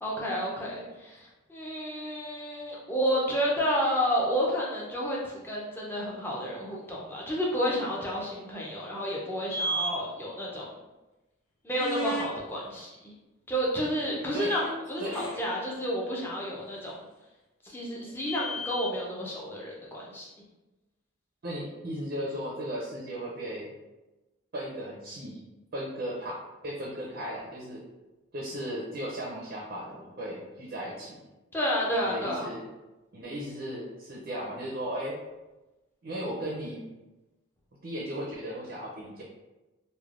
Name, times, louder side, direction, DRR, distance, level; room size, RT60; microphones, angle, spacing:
voice 1, 0.0-10.8 11.6-13.1 13.5-17.0 17.6-20.3 31.5-32.5, equal, 10° left, -4 dB, 0.5 m, -30 dB
sound 1, 9.5-9.9 11.7-12.3 14.1-14.7 15.0-15.4 16.2-16.3 18.1-18.9, right 1 dB, 85° left, 0.6 m, -33 dB
voice 2, 21.4-23.7 24.5-25.4 25.7-27.8 28.3-31.2 32.0-32.7 33.1-35.2 36.0-36.9 37.8-39.2, equal, 50° right, -3 dB, 0.5 m, -36 dB
3.2 x 2.1 x 2.4 m, 1.1 s
head